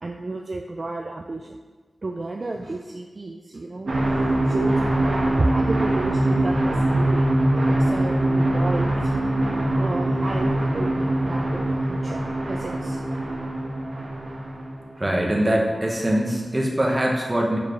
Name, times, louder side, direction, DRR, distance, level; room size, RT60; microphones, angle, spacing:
voice 1, 0.0-1.6 2.0-3.9 4.4-7.2 7.6-9.1 9.7-13.0, right 2 dB, 50° right, 2 dB, 0.4 m, -31 dB
sound 1, 3.9-15.0, right 1 dB, 85° right, 1.1 m, -23 dB
voice 2, 15.0-17.6, right 1 dB, 25° right, -2 dB, 1.1 m, -22 dB
6.8 x 4.8 x 3.1 m, 1.3 s
wide cardioid pair, 85°, 0 cm